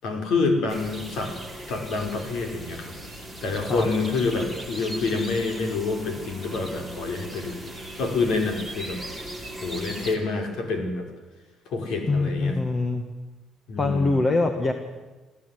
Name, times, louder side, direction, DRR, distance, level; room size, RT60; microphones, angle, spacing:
voice 1, 0.0-1.3 1.7-9.0 9.6-11.1 11.7-12.6 13.7-14.1, left 3 dB, 70° left, 4 dB, 5.4 m, -27 dB
sound 1, 0.7-10.2, right 1 dB, 10° left, 3.3 m, -39 dB
voice 2, 12.1-13.0 13.8-14.7, left 3 dB, 25° left, 6 dB, 1.7 m, -23 dB
27.0 x 15.0 x 9.5 m, 1.2 s
cardioid pair, 165°, 0 cm